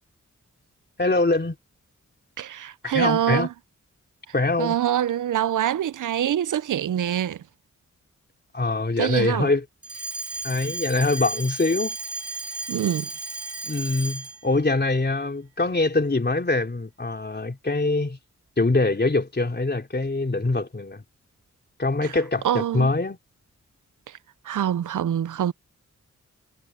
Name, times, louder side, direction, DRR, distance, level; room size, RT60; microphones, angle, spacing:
voice 1, 1.0-1.6 2.8-3.5 4.3-4.8 8.5-9.6 10.4-12.0 13.6-18.2 18.6-21.0 21.8-23.2, left 2 dB, 35° left, 3.6 m, -23 dB
voice 2, 2.4-3.5 4.6-7.4 9.0-9.5 12.7-13.1 22.0-22.2 22.4-22.9 24.1-24.2 24.4-25.5, right 10 dB, 90° right, 0.6 m, -25 dB
Alarm, 9.8-14.5, right 3 dB, 50° right, 2.4 m, -34 dB
cardioid pair, 55°, 30 cm